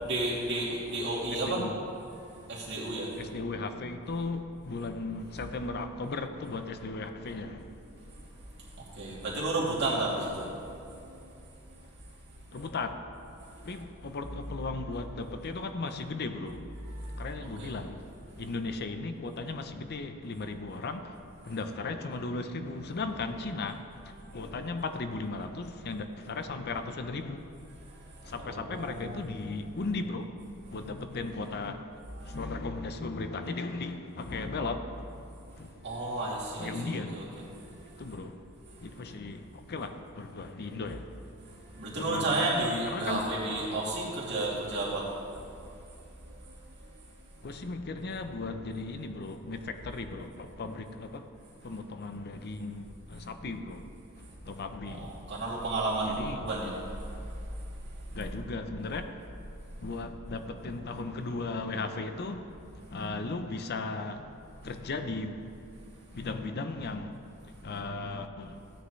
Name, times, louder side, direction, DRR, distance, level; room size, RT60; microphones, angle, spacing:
voice 1, 0.0-1.6 2.2-3.2 7.9-8.1 8.5-11.8 13.4-13.8 16.9-17.7 27.9-29.2 32.2-32.4 35.4-35.5 35.8-37.2 37.5-37.9 38.8-39.0 41.4-45.1 46.2-46.7 54.9-56.7 57.0-57.2, right 2 dB, 55° right, 2.7 m, -33 dB
voice 2, 3.2-7.7 12.5-13.0 13.6-16.6 17.2-18.0 18.4-21.2 21.4-27.4 28.2-30.3 30.7-31.9 32.2-35.1 35.6-35.7 36.6-37.3 38.0-38.4 38.8-41.1 42.0-42.5 42.9-43.2 43.5-43.9 47.4-51.2 51.6-53.8 54.4-55.1 56.0-56.4 58.1-59.1 59.8-62.5 62.9-64.2 64.6-65.4 66.1-67.2 67.6-68.6, left 3 dB, 50° left, 0.6 m, -36 dB
15.5 x 9.6 x 3.2 m
head